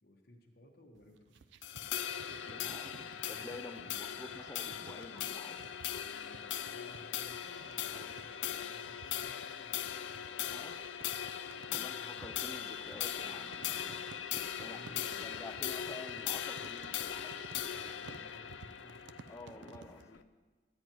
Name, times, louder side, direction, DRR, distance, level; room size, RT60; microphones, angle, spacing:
voice 1, 0.0-1.5 2.4-4.1 5.9-10.1 11.5-12.7 14.5-15.9 17.7-19.1, left 1 dB, 55° left, 1 dB, 1.3 m, -60 dB
sound 1, 1.0-20.1, right 5 dB, 75° right, 0.4 m, -55 dB
sound 2, 1.6-20.2, left 10 dB, 85° left, 0.4 m, -40 dB
voice 2, 2.4-5.6 7.9-8.1 10.5-10.8 11.7-14.0 14.6-17.4 19.3-20.2, left 2 dB, 15° left, 7 dB, 0.5 m, -50 dB
13.0 x 9.1 x 3.0 m, 1.4 s
head